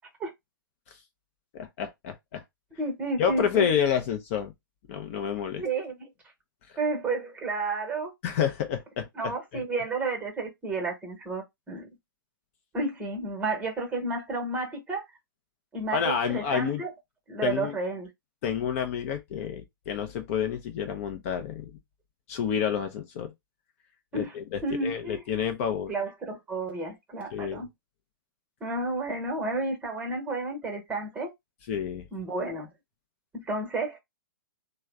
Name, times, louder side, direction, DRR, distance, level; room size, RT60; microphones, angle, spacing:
voice 1, 1.5-2.4 3.2-4.5 4.9-5.6 6.7-6.8 8.2-9.1 9.5-9.6 15.9-16.8 17.4-17.8 18.4-21.8 22.3-23.3 24.1-25.9 27.3-27.7 31.7-32.1, left 8 dB, 40° left, 0.5 m, -29 dB
voice 2, 2.8-3.7 5.6-6.1 6.8-8.1 9.2-11.9 12.7-15.0 15.7-16.9 17.3-18.1 24.1-24.3 24.6-25.2 25.9-27.7 28.6-31.3 32.1-32.7 33.3-34.0, right 3 dB, 10° right, 1.0 m, -31 dB
3.2 x 2.1 x 3.5 m
hypercardioid pair, 135°, 12 cm